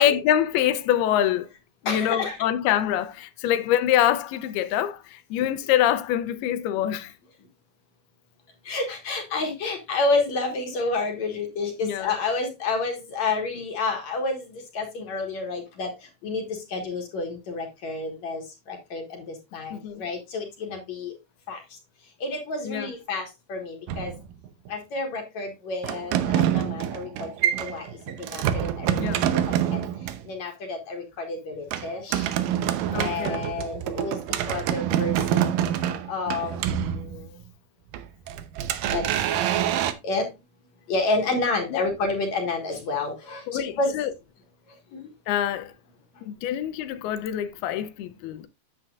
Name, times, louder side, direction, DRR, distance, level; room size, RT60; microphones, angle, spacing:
voice 1, 0.0-1.5 1.8-7.1 11.8-12.1 19.7-20.0 22.6-22.9 28.9-29.2 32.9-33.4 41.7-41.9 43.5-44.1 45.3-45.7 46.2-48.5, left 11 dB, 85° left, 2.7 m, -25 dB
voice 2, 1.9-2.4 8.7-15.9 16.2-18.4 18.7-19.2 19.5-21.1 21.5-21.6 22.2-24.1 24.7-27.9 28.2-29.8 30.3-32.3 32.9-35.5 36.1-37.2 38.9-39.0 40.0-40.3 40.9-44.0 44.9-45.1, left 3 dB, 55° left, 2.5 m, -29 dB
sound 1, 23.9-24.7 25.8-30.3 31.7-37.5 37.9-39.9, right 10 dB, 75° right, 2.2 m, -26 dB
9.7 x 7.5 x 2.4 m
omnidirectional pair, 4.4 m